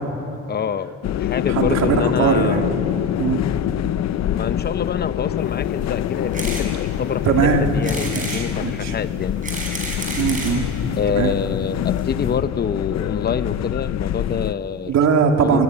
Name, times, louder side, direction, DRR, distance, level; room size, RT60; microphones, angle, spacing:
voice 1, 0.5-2.7 4.3-7.3 7.7-9.3 11.0-14.9 15.4-15.6, left 7 dB, 35° left, 12 dB, 0.9 m, -26 dB
sound 1, 1.0-14.5, left 11 dB, 65° left, 0.8 m, -25 dB
voice 2, 1.5-2.8 3.2-3.4 7.2-7.7 8.2-9.0 10.1-10.7 11.1-11.3 14.9-15.6, right 6 dB, 65° right, 4 dB, 2.8 m, -20 dB
sound 2, 6.3-6.7 7.1-7.2 7.8-8.4 9.2-10.6 11.4-11.5 11.7-11.8 12.0-12.1, right 2 dB, 25° right, 7.0 m, -30 dB
25.0 x 23.5 x 9.8 m, 2.9 s
cardioid pair, 140°, 29 cm